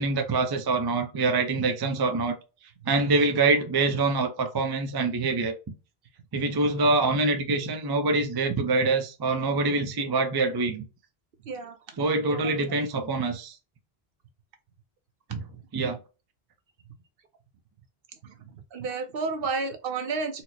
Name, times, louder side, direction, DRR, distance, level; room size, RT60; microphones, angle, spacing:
voice 1, 0.0-2.4 2.9-5.5 6.3-10.9 12.0-13.6 15.3-15.4 15.7-16.0, right 3 dB, 35° right, 0.4 m, -25 dB
voice 2, 11.4-12.0 12.4-12.5 18.2-20.4, right 4 dB, 65° right, 0.8 m, -32 dB
4.2 x 2.0 x 2.7 m
omnidirectional pair, 1.1 m